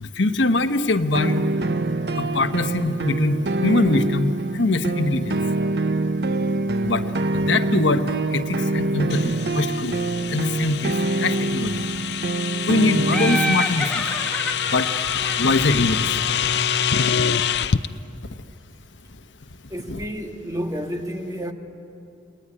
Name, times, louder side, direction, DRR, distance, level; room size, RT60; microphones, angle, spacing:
voice 1, 0.0-1.4 2.2-5.4 6.8-7.0 7.3-8.0 8.3-10.0 10.3-11.9 12.7-14.0 14.7-14.9 15.4-16.1 19.9-20.0, left 2 dB, 85° left, 1.1 m, -23 dB
sound 1, 1.1-13.6, right 2 dB, 60° right, 0.8 m, -25 dB
sound 2, 9.1-17.9, left 8 dB, 65° left, 0.6 m, -26 dB
Laughter, 13.1-16.7, left 1 dB, 5° left, 1.9 m, -29 dB
voice 2, 19.7-21.5, equal, 20° right, 1.7 m, -31 dB
30.0 x 19.5 x 10.0 m
head